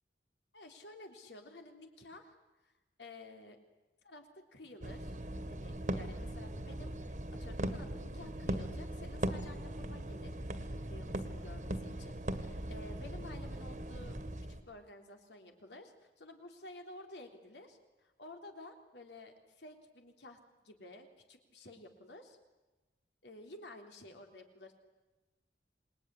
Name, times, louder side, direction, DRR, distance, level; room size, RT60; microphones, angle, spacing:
voice 1, 0.5-2.4 2.6-2.7 3.0-3.6 4.0-5.2 5.5-10.6 10.9-14.2 14.5-20.4 20.6-22.4 23.2-24.8, left 2 dB, 85° left, 5 dB, 3.5 m, -52 dB
sound 1, 4.8-14.6, right 1 dB, 45° right, 1.7 m, -39 dB
27.0 x 20.5 x 9.9 m, 1.1 s
head